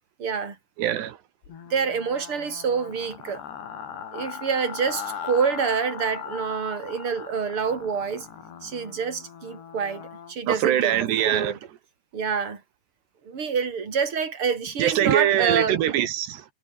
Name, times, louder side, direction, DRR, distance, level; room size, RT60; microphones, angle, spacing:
voice 1, 0.2-0.6 1.7-3.4 4.1-8.3 8.6-11.6 12.1-12.6 13.2-15.8, right 6 dB, 30° right, 4.7 m, -27 dB
voice 2, 0.8-1.2 10.5-11.5 14.8-16.5, right 11 dB, 85° right, 4.0 m, -23 dB
sound 1, 1.4-10.3, left 7 dB, 85° left, 5.8 m, -39 dB
omnidirectional pair, 4.7 m